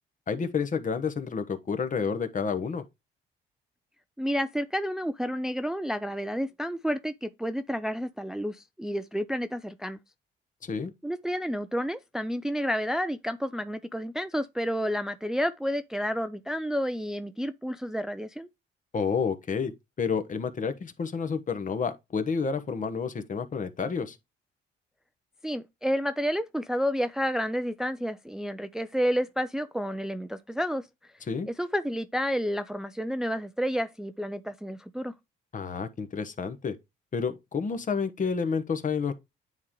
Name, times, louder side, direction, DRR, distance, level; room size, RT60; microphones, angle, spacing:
voice 1, 0.3-2.8 10.6-10.9 18.9-19.7 20.0-24.2 31.3-31.5 35.5-36.8 37.1-39.1, left 5 dB, 40° left, 1.1 m, -30 dB
voice 2, 4.2-10.0 11.0-18.5 25.4-30.9 31.5-35.1, equal, 5° right, 0.4 m, -30 dB
9.6 x 3.7 x 3.1 m
cardioid pair, 90°, 20 cm